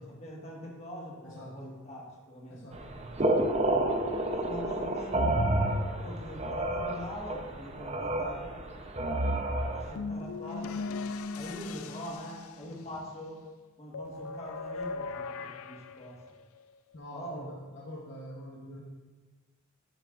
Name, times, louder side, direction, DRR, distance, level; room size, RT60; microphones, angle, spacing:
voice 1, 0.2-2.7 4.3-5.4 5.9-8.5 9.7-11.0 11.3-13.4 13.8-16.2 17.1-17.5, equal, 30° left, -3 dB, 1.5 m, -43 dB
voice 2, 1.2-1.7 2.5-3.4 16.9-18.8, equal, 55° left, -3 dB, 0.9 m, -45 dB
sound 1, 2.7-9.9, right 1 dB, 30° right, 0.6 m, -30 dB
sound 2, 10.0-13.0 13.9-16.8, left 4 dB, 85° left, 0.4 m, -39 dB
12.0 x 6.7 x 2.5 m, 1.3 s
head